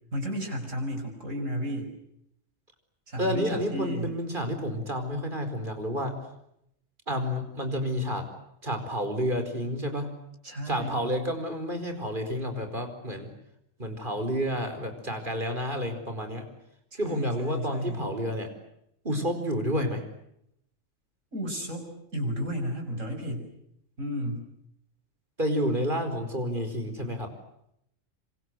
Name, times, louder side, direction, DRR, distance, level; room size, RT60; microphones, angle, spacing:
voice 1, 0.1-1.9 3.1-4.1 10.4-11.0 16.9-18.0 21.3-21.9 22.1-23.5 24.0-24.5, equal, 80° right, 4 dB, 6.4 m, -33 dB
voice 2, 3.2-6.2 7.1-8.3 8.6-10.1 10.6-13.3 13.8-16.4 17.0-18.5 19.0-20.0 25.4-27.3, equal, 40° right, 7 dB, 5.0 m, -30 dB
27.0 x 26.5 x 8.1 m, 0.77 s
omnidirectional pair, 1.3 m